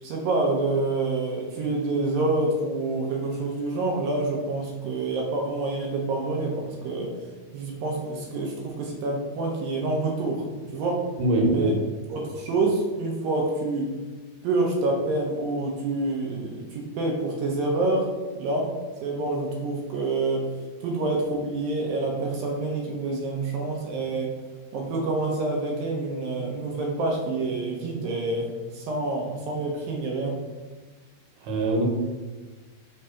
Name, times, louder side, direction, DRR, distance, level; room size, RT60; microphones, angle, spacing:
voice 1, 0.0-7.1 7.5-10.4 10.7-11.0 11.5-11.8 12.1-14.0 14.4-18.1 18.4-18.7 19.0-20.5 20.8-24.4 24.7-30.4, right 2 dB, 75° right, 0 dB, 2.4 m, -27 dB
voice 2, 11.2-11.8 31.4-31.9, right 1 dB, 90° right, 0 dB, 3.2 m, -22 dB
6.3 x 3.3 x 5.6 m, 1.3 s
omnidirectional pair, 4.6 m